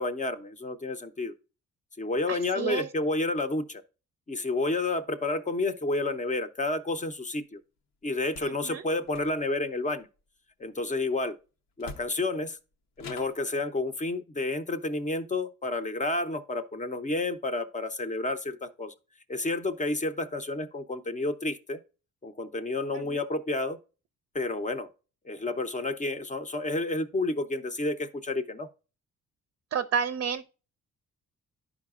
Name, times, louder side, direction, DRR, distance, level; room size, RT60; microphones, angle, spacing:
voice 1, 0.0-1.3 2.0-3.8 4.3-7.6 8.0-10.1 10.6-11.4 11.8-12.6 13.0-18.9 19.3-21.8 22.2-23.8 24.3-24.9 25.3-28.7, left 2 dB, 25° left, 0.7 m, -30 dB
voice 2, 2.3-2.9 8.4-8.8 22.9-23.2 29.7-30.5, right 7 dB, 45° right, 0.6 m, -31 dB
sound 1, 8.2-8.6 9.0-9.7 11.3-11.4 11.8-12.4 13.0-13.5, left 4 dB, 65° left, 0.8 m, -46 dB
11.5 x 4.9 x 2.4 m
cardioid pair, 90°, 30 cm